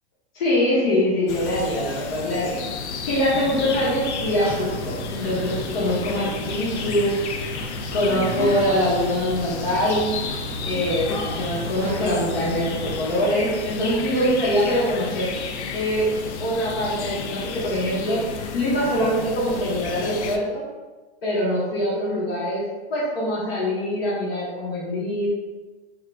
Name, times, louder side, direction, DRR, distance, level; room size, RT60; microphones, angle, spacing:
voice 1, 0.3-2.6 3.1-7.1 7.9-10.1 10.6-15.3 15.7-16.1 16.4-20.6 21.2-22.6 22.9-25.3, equal, 60° left, -7 dB, 1.1 m, -23 dB
sound 1, 1.3-20.4, left 5 dB, 90° left, 0.5 m, -32 dB
sound 2, 3.3-12.9, equal, 30° left, 1.0 m, -34 dB
3.7 x 2.4 x 3.3 m, 1.3 s
supercardioid pair, 180°, 34 cm